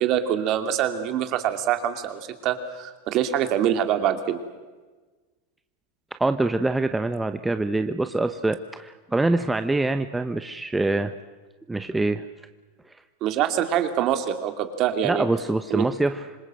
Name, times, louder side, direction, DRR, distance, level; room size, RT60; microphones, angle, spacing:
voice 1, 0.0-4.4 13.2-15.2 15.7-15.9, right 10 dB, 45° right, 8 dB, 2.7 m, -24 dB
voice 2, 6.2-11.1 11.7-12.2 15.0-16.3, right 2 dB, 10° right, 9 dB, 0.9 m, -24 dB
26.0 x 21.0 x 7.7 m, 1.3 s
supercardioid pair, 120°, 0 cm